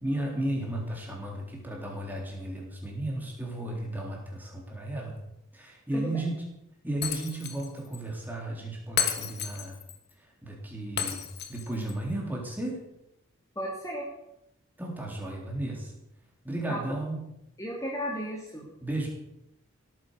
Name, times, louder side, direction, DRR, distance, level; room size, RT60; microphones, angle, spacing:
voice 1, 0.0-5.2 5.5-6.4 6.8-9.8 10.2-11.2 11.5-12.8 14.8-15.9 16.4-17.2 18.8-19.1, right 1 dB, 10° right, -1 dB, 3.7 m, -34 dB
Shatter, 7.0-7.7 7.9-8.0 9.0-10.0 11.0-11.9, left 8 dB, 45° left, 1.5 m, -32 dB
voice 2, 13.6-14.0 16.7-17.0 17.6-18.7, equal, 15° left, -2 dB, 2.4 m, -34 dB
17.0 x 9.3 x 6.8 m, 0.83 s
head